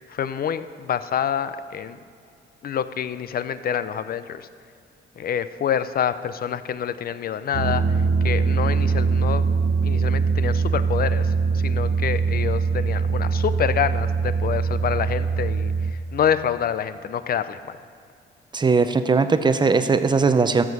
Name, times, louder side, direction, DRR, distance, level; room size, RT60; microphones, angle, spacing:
voice 1, 0.1-2.0 2.6-4.5 5.2-9.4 9.8-17.8, left 8 dB, 50° left, 13 dB, 0.5 m, -27 dB
sound 1, 7.5-15.9, right 5 dB, 50° right, 0.8 m, -22 dB
voice 2, 18.5-20.6, right 4 dB, 20° right, 10 dB, 0.6 m, -19 dB
14.0 x 6.4 x 5.5 m, 2.4 s
cardioid pair, 90°, 20 cm